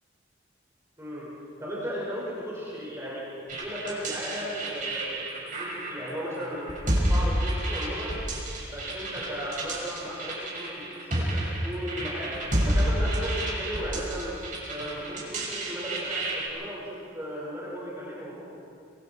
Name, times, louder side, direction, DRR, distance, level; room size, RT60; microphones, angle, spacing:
voice 1, 1.0-1.3 1.6-6.8 7.0-8.2 8.7-14.3 14.7-18.4, equal, 15° right, -7 dB, 5.5 m, -36 dB
sound 1, 3.5-16.5, right 1 dB, 40° right, 6.0 m, -30 dB
26.5 x 23.0 x 4.7 m, 2.5 s
head